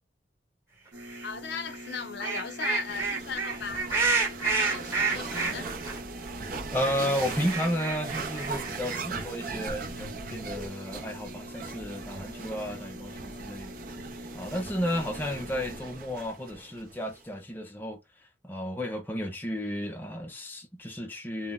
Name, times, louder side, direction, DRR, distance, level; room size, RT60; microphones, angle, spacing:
sound 1, 0.9-15.8, equal, 90° right, 0.8 m, -45 dB
sound 2, 1.0-1.3 1.7-6.0 6.3-6.4 6.5-9.3, right 4 dB, 15° right, 1.0 m, -30 dB
voice 1, 1.2-5.7 14.6-14.8, left 6 dB, 65° left, 0.6 m, -37 dB
sound 3, 2.9-17.2, right 4 dB, 50° right, 0.5 m, -39 dB
voice 2, 6.7-13.7 14.3-18.0 18.4-21.5, equal, 10° left, 0.5 m, -33 dB
2.1 x 2.0 x 3.6 m
head